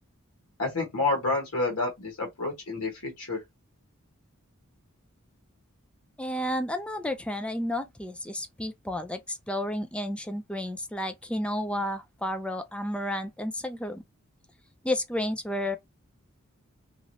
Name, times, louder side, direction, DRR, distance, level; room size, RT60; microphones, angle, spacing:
voice 1, 0.6-3.4, left 3 dB, 80° left, 1.1 m, -29 dB
voice 2, 6.2-14.0 14.8-15.8, left 1 dB, 5° left, 0.3 m, -31 dB
3.0 x 2.5 x 2.6 m
head